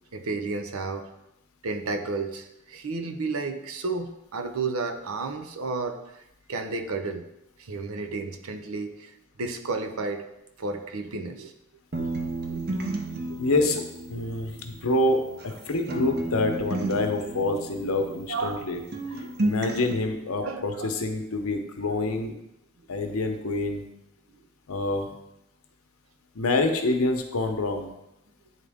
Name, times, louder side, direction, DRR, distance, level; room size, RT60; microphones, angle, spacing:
voice 1, 0.1-1.1 1.6-6.2 6.5-7.2 7.6-10.2 10.6-11.5 12.0-12.1 12.5-12.8 13.3-13.4 14.1-14.3 18.3-18.7 19.1-19.3 20.4-20.9 22.0-22.1 23.1-23.2, right 3 dB, 85° right, 7 dB, 0.7 m, -32 dB
sound 1, 11.9-15.6 15.9-18.7 18.9-19.9, right 2 dB, 50° right, 0.8 m, -32 dB
voice 2, 13.4-13.8 14.1-15.2 15.4-18.8 19.4-22.3 22.9-23.8 24.7-25.1 26.3-27.9, left 2 dB, 85° left, 5 dB, 0.8 m, -26 dB
9.2 x 3.7 x 3.5 m, 0.87 s
head